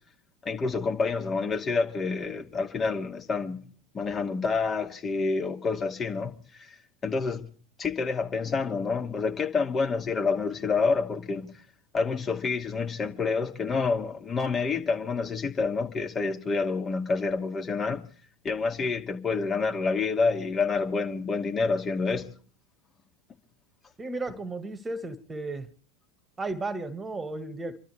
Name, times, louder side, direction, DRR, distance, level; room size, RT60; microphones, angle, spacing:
voice 1, 0.4-3.6 3.9-6.8 7.0-7.5 7.8-11.5 11.9-18.0 18.4-22.3, left 4 dB, 30° left, 2.5 m, -28 dB
voice 2, 24.0-25.7 26.4-27.8, right 2 dB, 15° right, 1.9 m, -34 dB
29.0 x 13.0 x 3.4 m
hypercardioid pair, 80°, 0 cm